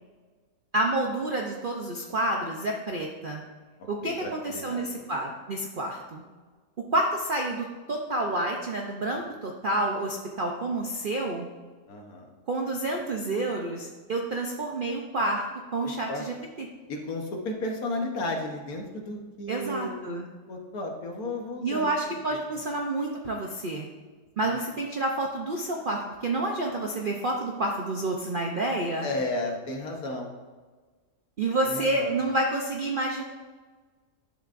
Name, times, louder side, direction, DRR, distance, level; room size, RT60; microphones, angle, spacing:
voice 1, 0.7-3.4 3.9-6.2 6.9-11.5 12.5-15.4 15.7-16.7 19.5-20.3 21.6-23.9 24.4-29.1 31.4-33.2, right 2 dB, 75° right, 0 dB, 0.4 m, -29 dB
voice 2, 4.0-5.0 11.9-12.3 15.8-16.3 16.9-20.0 20.5-22.4 24.4-24.6 29.0-30.3 31.6-32.2, left 2 dB, 65° left, 2 dB, 1.4 m, -34 dB
11.0 x 6.9 x 2.5 m, 1.4 s
omnidirectional pair, 1.8 m